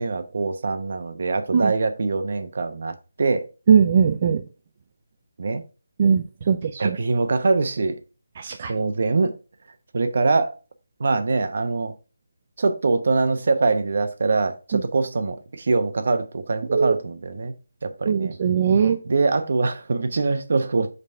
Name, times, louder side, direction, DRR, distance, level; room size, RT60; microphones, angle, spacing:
voice 1, 0.0-3.5 5.4-5.6 6.8-8.0 8.7-9.3 9.9-10.5 11.0-11.9 12.6-17.5 17.8-18.4 19.0-20.9, right 3 dB, 50° right, 0.9 m, -23 dB
voice 2, 3.7-4.4 6.0-7.0 8.4-8.7 14.7-14.8 16.7-16.9 18.1-19.0, right 7 dB, 30° right, 0.4 m, -20 dB
5.4 x 4.0 x 4.4 m
figure-of-eight pair, 170°, 0 cm